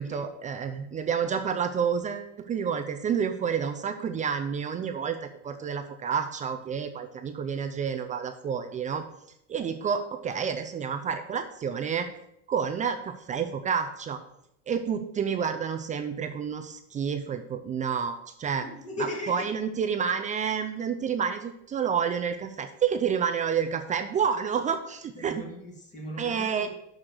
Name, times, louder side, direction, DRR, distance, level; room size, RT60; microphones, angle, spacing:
voice 1, 0.0-9.0 9.5-12.1 12.5-14.2 14.7-18.6 19.0-25.4 26.2-26.7, right 7 dB, 25° right, 7 dB, 0.5 m, -29 dB
voice 2, 18.6-19.4 25.2-26.7, left 1 dB, 20° left, 0 dB, 2.0 m, -38 dB
6.4 x 6.1 x 6.6 m, 0.78 s
cardioid pair, 160°, 32 cm